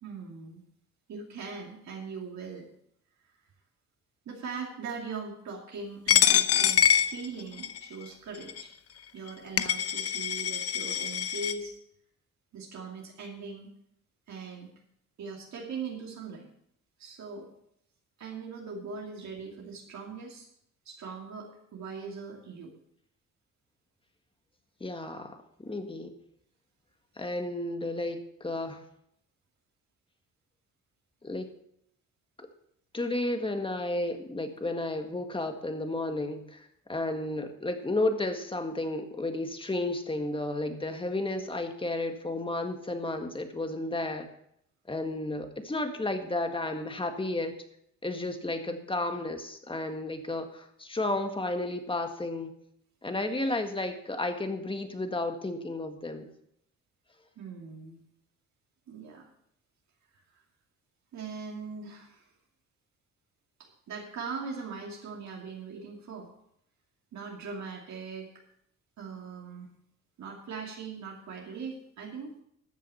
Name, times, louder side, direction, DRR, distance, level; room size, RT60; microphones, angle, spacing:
voice 1, 0.0-0.6 1.1-2.7 4.3-8.7 9.1-11.7 12.5-13.7 14.3-14.7 15.2-16.5 17.0-17.5 18.2-20.5 20.8-22.7 48.7-48.8 57.4-58.0 58.9-59.3 60.1-60.2 61.1-62.3 63.6-66.3 67.1-68.3 69.0-69.7 70.2-72.4, right 5 dB, 65° right, -1 dB, 2.7 m, -40 dB
Coin (dropping), 6.1-7.8 8.5-8.6 9.3-9.4 9.6-11.5, left 9 dB, 50° left, 0.8 m, -25 dB
voice 2, 24.8-26.1 27.2-28.8 31.2-31.5 32.4-32.5 32.9-44.3 44.9-47.6 48.0-52.5 53.0-56.3, left 2 dB, 15° left, 6 dB, 1.7 m, -32 dB
13.5 x 7.6 x 5.8 m, 0.72 s
cardioid pair, 90°, 30 cm